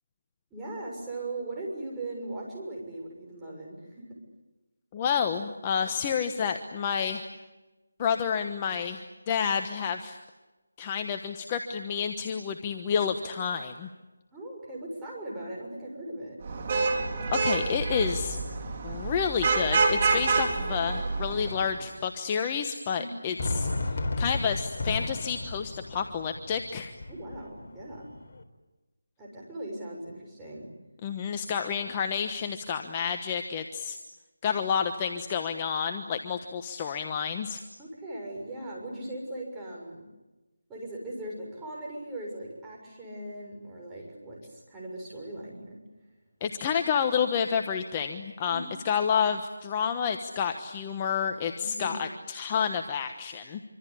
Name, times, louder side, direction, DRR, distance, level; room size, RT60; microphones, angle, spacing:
voice 1, 0.5-4.2 14.3-16.4 23.0-23.4 27.1-28.1 29.2-30.7 37.8-40.0 40.7-45.8 48.5-48.8 51.6-52.0, right 1 dB, 10° right, -4 dB, 6.7 m, -39 dB
voice 2, 4.9-7.2 8.0-10.2 10.8-13.9 17.3-18.4 18.8-23.7 24.2-26.9 31.0-34.0 34.4-37.6 46.4-53.6, left 7 dB, 20° left, 6 dB, 1.2 m, -29 dB
Vehicle horn car horn honking / Traffic noise roadway noise, 16.5-21.7, right 3 dB, 30° right, 4.1 m, -27 dB
Fireworks, 23.4-28.4, left 2 dB, 40° left, 3.9 m, -34 dB
26.5 x 25.5 x 8.5 m, 1.1 s
figure-of-eight pair, 165°, 0 cm